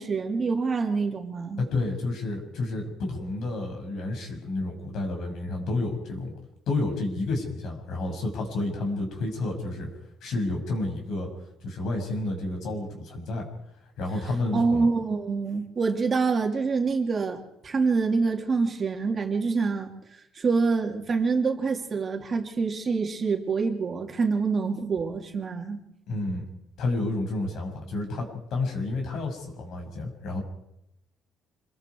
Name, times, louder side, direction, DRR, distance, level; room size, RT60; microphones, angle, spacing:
voice 1, 0.0-1.6 14.5-19.9 20.3-25.8, right 4 dB, 30° right, 2 dB, 2.8 m, -26 dB
voice 2, 1.6-6.3 6.7-9.9 10.2-11.3 11.6-13.4 14.0-14.9 26.1-26.4 26.8-30.4, left 2 dB, 65° left, 2 dB, 6.6 m, -30 dB
27.0 x 21.5 x 4.8 m, 0.84 s
cardioid pair, 135°, 0 cm